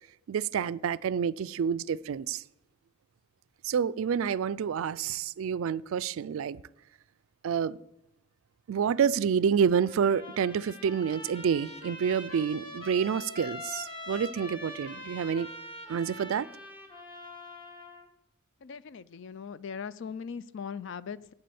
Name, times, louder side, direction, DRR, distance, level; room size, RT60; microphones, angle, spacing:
voice 1, 0.3-2.4 3.6-6.6 7.4-7.8 8.7-15.5 15.9-16.5, right 7 dB, 70° right, 0.3 m, -28 dB
Trumpet, 9.9-18.1, left 1 dB, 25° left, 1.4 m, -43 dB
voice 2, 18.6-21.3, left 6 dB, 55° left, 0.4 m, -39 dB
8.8 x 7.5 x 6.9 m
head